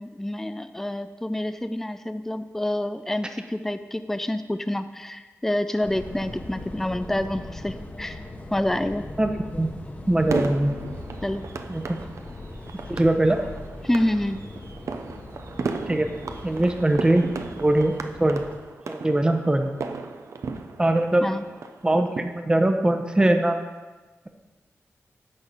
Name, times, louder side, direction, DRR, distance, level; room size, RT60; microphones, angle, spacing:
voice 1, 0.0-8.2 8.5-9.0 11.2-11.4 13.8-14.4 21.2-21.4, left 1 dB, 5° left, 10 dB, 0.4 m, -27 dB
sound 1, 5.8-18.6, left 2 dB, 30° left, 1.0 m, -40 dB
voice 2, 9.2-9.7 10.1-10.7 11.7-11.9 12.9-13.4 15.9-16.1 16.4-17.3 17.6-18.5 18.9-19.7 20.8-21.2 21.8-23.6, right 1 dB, 15° right, 5 dB, 0.8 m, -21 dB
sound 2, 10.3-22.2, right 4 dB, 75° right, 0.6 m, -35 dB
10.5 x 4.1 x 7.3 m, 1.2 s
wide cardioid pair, 135°, 5 cm